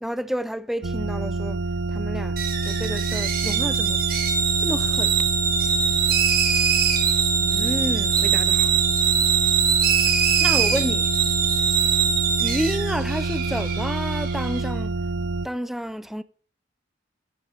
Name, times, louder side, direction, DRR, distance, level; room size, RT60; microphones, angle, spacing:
voice 1, 0.0-1.6 1.9-2.3 2.7-4.0 4.6-5.1 7.4-8.7 10.4-11.1 12.4-15.0 15.4-16.2, equal, ahead, 0.5 m, -30 dB
sound 1, 0.8-15.5, right 3 dB, 65° right, 0.6 m, -28 dB
sound 2, 2.4-14.6, right 7 dB, 50° right, 2.7 m, -22 dB
14.5 x 9.7 x 4.3 m
head